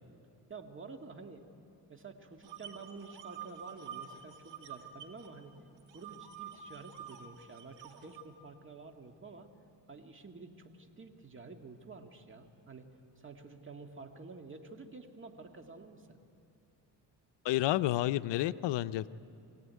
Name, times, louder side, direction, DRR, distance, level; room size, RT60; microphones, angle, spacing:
voice 1, 0.5-1.4 1.9-5.5 5.9-9.5 9.9-12.9 13.2-16.2, right 4 dB, 30° right, 4 dB, 1.9 m, -50 dB
sound 1, 2.4-5.3 5.6-8.2, right 8 dB, 85° right, 2.5 m, -48 dB
voice 2, 17.4-19.1, left 15 dB, 80° left, 14 dB, 0.6 m, -30 dB
25.0 x 17.0 x 9.5 m, 2.6 s
cardioid pair, 110°, 42 cm